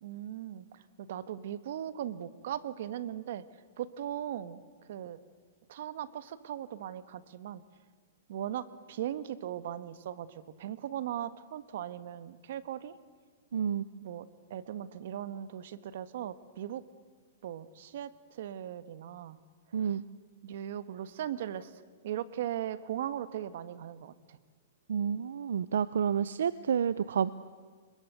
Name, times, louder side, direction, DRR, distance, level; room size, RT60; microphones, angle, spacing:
voice 1, 0.0-3.4 3.8-4.6 4.9-5.2 5.7-7.6 8.3-12.9 14.0-16.8 17.4-19.4 19.8-20.0 20.4-21.7 22.0-24.4, right 11 dB, 65° right, 14 dB, 1.4 m, -38 dB
voice 2, 13.5-13.8 19.7-20.0 24.9-27.3, right 8 dB, 85° right, 16 dB, 0.6 m, -29 dB
25.5 x 22.0 x 8.2 m, 1.5 s
hypercardioid pair, 150°, 0 cm